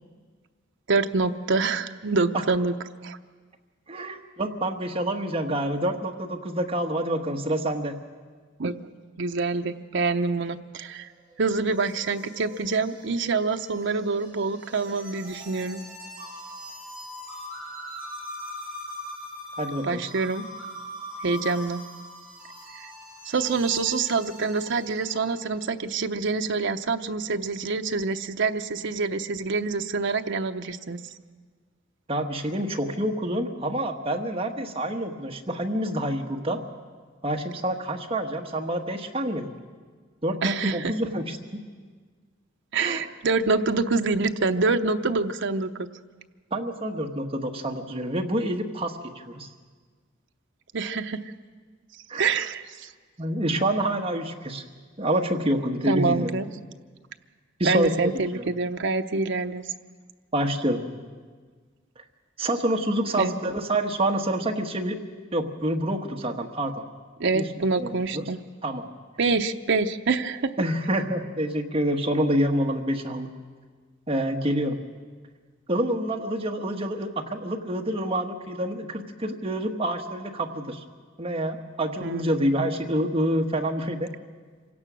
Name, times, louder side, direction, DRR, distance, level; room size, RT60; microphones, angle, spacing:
voice 1, 0.9-2.7 3.0-3.2 8.6-8.8 9.2-11.1 11.4-15.8 19.8-20.5 21.2-21.8 22.7-22.9 23.2-31.0 40.4-40.9 42.7-45.9 50.7-51.2 52.2-52.9 55.9-56.5 57.6-59.6 63.2-63.3 67.2-68.4 69.2-70.5 82.0-82.3, right 4 dB, 60° right, 6 dB, 0.7 m, -26 dB
voice 2, 3.9-7.9 19.6-20.0 32.1-36.6 37.2-39.5 40.2-41.6 42.8-43.1 46.5-49.5 52.1-52.3 53.2-54.6 55.0-56.3 57.6-58.4 60.3-60.8 62.4-65.0 65.3-66.8 67.3-67.5 67.8-68.3 68.6-68.8 70.6-73.3 74.1-74.8 75.7-80.8 81.2-84.1, right 1 dB, 30° right, 3 dB, 1.3 m, -27 dB
sound 1, 10.9-25.5, left 1 dB, 5° right, 6.2 m, -41 dB
26.0 x 17.0 x 6.2 m, 1.5 s
head